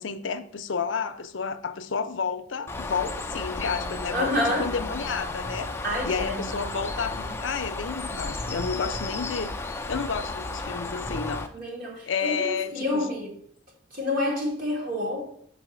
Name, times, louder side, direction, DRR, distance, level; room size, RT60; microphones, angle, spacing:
voice 1, 0.0-5.7 6.0-11.5 12.1-13.1, left 5 dB, 75° left, 0.5 m, -31 dB
Bird, 2.7-11.5, left 2 dB, 15° left, 0.5 m, -33 dB
voice 2, 4.1-4.7 5.8-6.6 11.5-13.3 13.9-15.3, left 1 dB, 45° right, 1.9 m, -28 dB
6.2 x 4.0 x 5.9 m
head